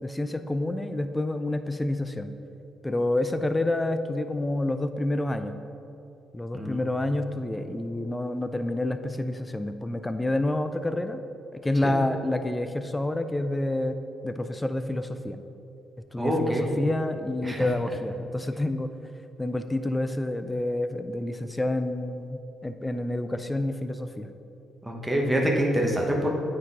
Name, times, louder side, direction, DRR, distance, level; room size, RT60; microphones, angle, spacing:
voice 1, 0.0-2.3 2.8-5.6 6.3-11.2 11.5-14.0 14.2-15.4 16.1-18.9 19.4-24.3, left 1 dB, 15° left, 9 dB, 0.4 m, -28 dB
voice 2, 16.2-16.8 17.4-17.7 24.8-26.3, equal, 5° right, -1 dB, 1.0 m, -25 dB
9.1 x 3.9 x 3.6 m, 2.8 s
cardioid pair, 90°, 0 cm